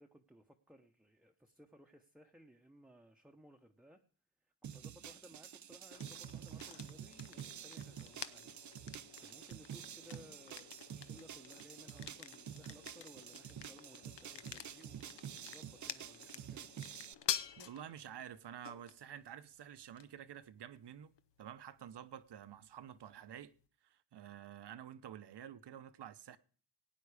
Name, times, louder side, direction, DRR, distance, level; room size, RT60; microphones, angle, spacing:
voice 1, 0.0-4.0 4.4-16.7, equal, ahead, 0.9 m, -61 dB
sound 1, 4.6-17.1, right 9 dB, 40° right, 0.5 m, -49 dB
sound 2, 5.9-23.7, left 9 dB, 65° left, 0.9 m, -49 dB
voice 2, 17.6-23.5 23.8-26.4, right 10 dB, 60° right, 0.9 m, -50 dB
17.0 x 9.2 x 4.9 m
wide cardioid pair, 110°, 45 cm